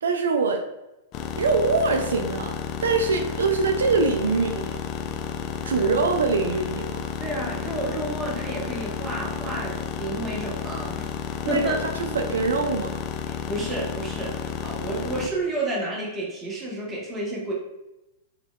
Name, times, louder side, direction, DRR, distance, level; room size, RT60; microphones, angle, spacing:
voice 1, 0.0-0.6 1.4-2.5 2.8-4.8 5.6-7.0 11.4-11.8 12.1-13.0, right 4 dB, 85° right, 4 dB, 0.3 m, -23 dB
sound 1, 1.1-15.3, left 8 dB, 40° left, 0.3 m, -32 dB
voice 2, 5.6-6.0 7.2-11.1 11.5-11.8 13.3-17.5, right 2 dB, 15° right, -4 dB, 1.3 m, -30 dB
3.2 x 3.2 x 2.3 m, 0.93 s
hypercardioid pair, 115°, 0 cm